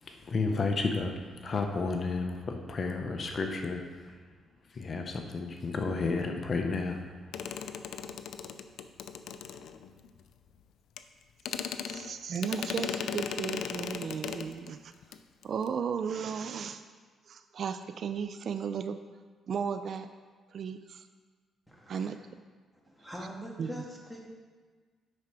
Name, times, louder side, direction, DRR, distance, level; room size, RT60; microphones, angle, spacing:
voice 1, 0.0-4.2 4.7-7.0, left 3 dB, 45° left, 4 dB, 0.8 m, -32 dB
sound 1, 7.3-10.1 11.0-11.1 11.4-14.7 15.0-15.2 15.4-15.7, left 7 dB, 75° left, 0.4 m, -37 dB
voice 2, 11.9-14.8 15.4-16.8 17.3-19.0 19.5-20.1 20.5-21.0 21.9-22.2 23.6-23.7, right 6 dB, 55° right, 10 dB, 0.4 m, -34 dB
voice 3, 21.7-22.2 22.8-24.2, equal, ahead, -2 dB, 1.7 m, -43 dB
9.5 x 4.3 x 4.9 m, 1.5 s
cardioid pair, 90°, 0 cm